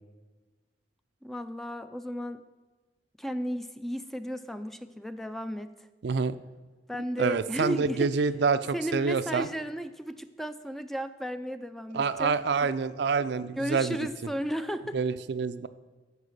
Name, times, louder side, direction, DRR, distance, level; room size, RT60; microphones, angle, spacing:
voice 1, 1.2-2.4 3.2-5.7 6.9-8.1 8.7-12.3 12.6-12.7 13.6-15.0, equal, ahead, 10 dB, 0.4 m, -34 dB
voice 2, 6.0-6.4 7.2-9.5 11.9-14.1 14.9-15.7, right 5 dB, 65° right, 13 dB, 0.4 m, -27 dB
13.5 x 4.8 x 6.5 m, 1.3 s
head